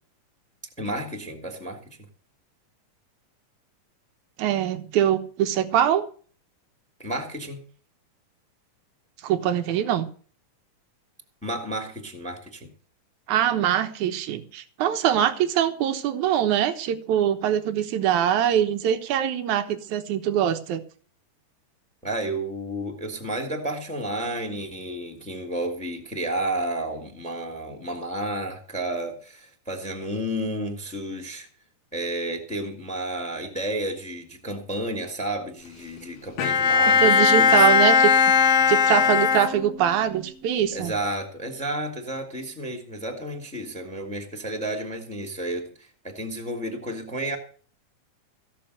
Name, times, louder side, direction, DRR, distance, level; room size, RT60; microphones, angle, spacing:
voice 1, 0.8-1.8 7.0-7.6 11.4-12.7 22.0-31.5 31.9-37.8 40.7-47.4, right 1 dB, ahead, 4 dB, 2.3 m, -31 dB
voice 2, 4.4-6.1 9.2-10.1 13.3-20.8 37.0-38.1 38.7-40.9, right 10 dB, 65° right, 9 dB, 2.6 m, -23 dB
Bowed string instrument, 36.4-40.0, left 6 dB, 60° left, 1.7 m, -19 dB
16.5 x 6.8 x 8.0 m, 0.43 s
omnidirectional pair, 3.8 m